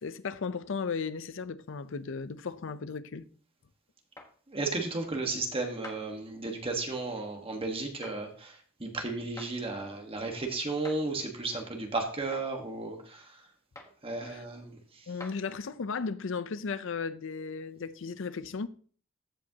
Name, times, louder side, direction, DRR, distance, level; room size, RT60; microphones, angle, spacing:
voice 1, 0.0-3.3 14.2-14.4 15.1-18.7, left 5 dB, 70° left, 0.6 m, -35 dB
sound 1, 4.2-4.3 5.8-6.0 8.0-8.2 9.4-9.5 10.8-11.0 12.3-12.5 13.7-14.0 15.2-15.4, left 2 dB, 15° left, 1.2 m, -45 dB
voice 2, 4.5-13.4 14.0-15.1, right 3 dB, 30° right, 1.3 m, -34 dB
15.5 x 5.2 x 2.8 m
head